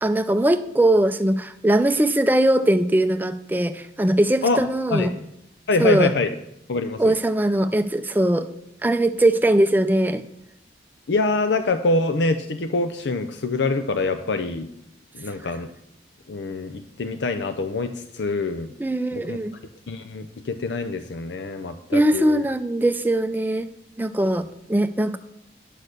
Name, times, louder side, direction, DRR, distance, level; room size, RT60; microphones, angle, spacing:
voice 1, 0.0-5.1 5.8-6.1 7.0-8.5 8.8-10.2 18.8-19.5 21.9-23.7 24.0-25.2, right 1 dB, 10° right, 9 dB, 0.4 m, -20 dB
voice 2, 5.7-6.3 6.7-7.1 11.1-14.7 15.1-15.7 16.3-18.7 19.1-19.4 19.9-22.4, left 3 dB, 85° left, 8 dB, 0.6 m, -25 dB
9.9 x 6.4 x 6.6 m, 0.81 s
head